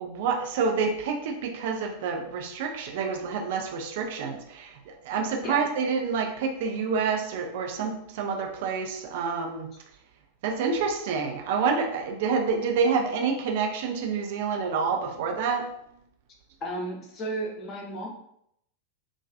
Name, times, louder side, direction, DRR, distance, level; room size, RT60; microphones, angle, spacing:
voice 1, 0.0-9.7 10.4-15.7, right 5 dB, 55° right, 2 dB, 0.4 m, -28 dB
voice 2, 16.6-18.1, right 1 dB, 30° left, -1 dB, 0.7 m, -33 dB
2.4 x 2.3 x 2.3 m, 0.74 s
figure-of-eight pair, 90°, 0 cm